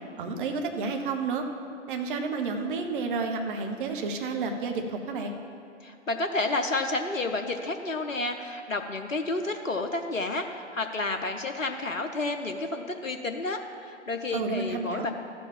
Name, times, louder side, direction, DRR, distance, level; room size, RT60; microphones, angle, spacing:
voice 1, 0.2-1.4 1.9-5.4 14.3-15.1, right 4 dB, 40° right, 4 dB, 1.1 m, -30 dB
voice 2, 5.8-15.1, left 2 dB, 85° left, 5 dB, 0.7 m, -30 dB
13.0 x 5.2 x 7.4 m, 2.5 s
figure-of-eight pair, 115°, 38 cm